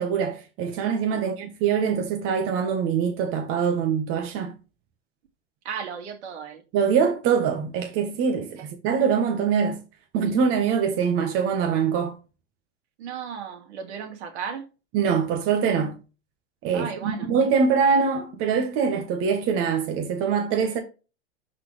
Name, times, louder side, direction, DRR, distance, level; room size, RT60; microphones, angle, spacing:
voice 1, 0.0-4.5 6.7-9.8 10.1-12.2 14.9-16.0 16.6-20.8, right 6 dB, 35° right, 1.5 m, -23 dB
voice 2, 5.6-6.6 8.6-8.7 13.0-14.6 16.7-17.3, right 7 dB, 65° right, 2.5 m, -35 dB
11.5 x 4.4 x 3.4 m
hypercardioid pair, 115°, 36 cm